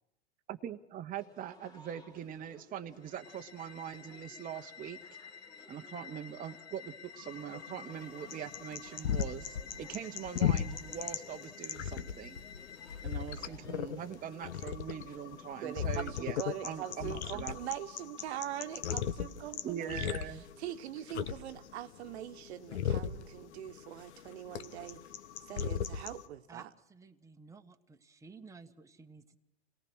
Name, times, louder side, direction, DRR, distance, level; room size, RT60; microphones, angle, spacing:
voice 1, 0.5-5.0 5.7-12.4 13.0-17.6 19.6-20.4, right 9 dB, 25° right, 1.0 m, -42 dB
sound 1, 1.2-16.5, left 2 dB, 10° left, 2.6 m, -59 dB
sound 2, 3.0-13.5, left 7 dB, 45° left, 2.7 m, -51 dB
sound 3, 7.2-26.3, left 9 dB, 80° left, 1.3 m, -37 dB
voice 2, 15.6-20.2 20.6-25.0 25.4-26.7, right 12 dB, 70° right, 1.3 m, -42 dB
voice 3, 26.5-29.4, right 4 dB, 10° right, 1.3 m, -54 dB
28.0 x 18.0 x 6.3 m
hypercardioid pair, 120°, 33 cm